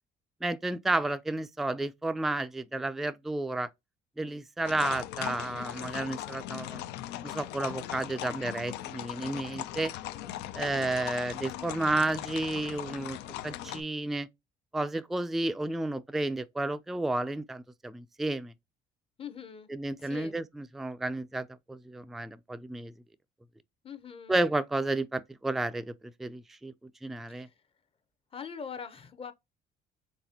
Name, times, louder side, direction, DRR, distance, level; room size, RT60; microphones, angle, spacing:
voice 1, 0.4-3.7 4.2-6.8 7.2-9.9 10.5-13.2 13.4-14.3 14.7-18.5 19.7-22.9 24.3-25.9 26.2-26.7 27.0-27.5, right 2 dB, ahead, 0.3 m, -32 dB
sound 1, 4.6-13.8, left 13 dB, 90° left, 0.5 m, -39 dB
voice 2, 10.6-10.9 19.2-19.7 20.0-20.4 23.8-24.3 27.3-27.5 28.3-29.3, left 6 dB, 35° left, 0.7 m, -42 dB
4.0 x 2.7 x 2.7 m
cardioid pair, 110°, 17 cm